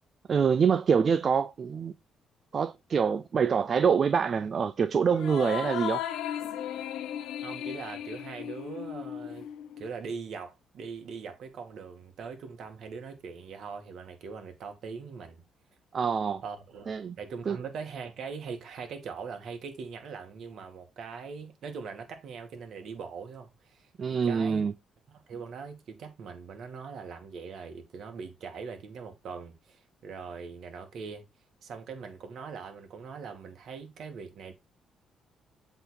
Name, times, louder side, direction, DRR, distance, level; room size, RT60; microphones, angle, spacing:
voice 1, 0.3-1.9 2.5-6.0 15.9-16.4 16.9-17.2 17.5-17.6 24.0-24.7, right 6 dB, 45° right, 0.5 m, -25 dB
sound 1, 5.1-9.9, left 10 dB, 85° left, 0.7 m, -36 dB
voice 2, 7.4-9.5 9.8-15.4 16.4-24.6 25.1-31.2 31.6-34.5, right 5 dB, 65° right, 2.3 m, -41 dB
8.0 x 4.0 x 4.3 m
cardioid pair, 90°, 0 cm